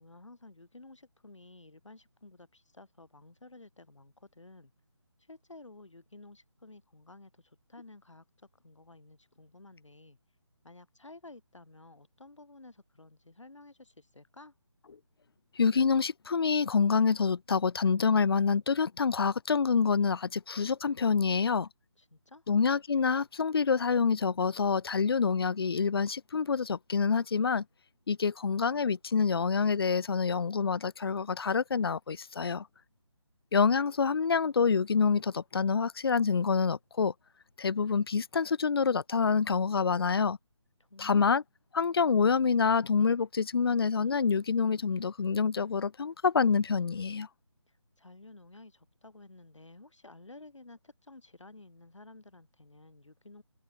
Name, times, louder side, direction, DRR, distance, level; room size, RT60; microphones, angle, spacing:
voice 1, 0.0-4.7 5.2-8.2 8.6-10.2 10.6-14.5 22.0-22.5 40.8-41.3 47.7-53.4, left 2 dB, 80° left, 5.4 m, -53 dB
voice 2, 15.6-21.7 22.5-27.6 28.1-32.6 33.5-37.1 37.6-40.4 41.0-41.4 41.7-47.3, left 5 dB, 55° left, 0.6 m, -27 dB
figure-of-eight pair, 160°, 15 cm